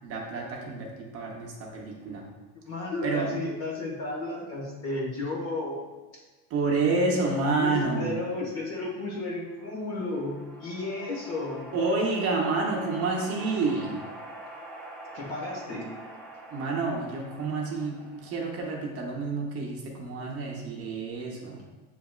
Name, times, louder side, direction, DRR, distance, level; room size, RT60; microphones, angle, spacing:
voice 1, 0.0-2.3 3.0-3.3 6.5-8.2 11.7-14.0 16.5-21.6, right 3 dB, 40° right, -1 dB, 0.7 m, -29 dB
voice 2, 2.6-5.8 7.6-11.7 15.1-15.9, left 2 dB, 45° left, -2 dB, 1.3 m, -33 dB
sound 1, 9.4-19.0, right 1 dB, 5° left, 0.3 m, -45 dB
7.6 x 2.9 x 2.3 m, 1.2 s
cardioid pair, 155°, 37 cm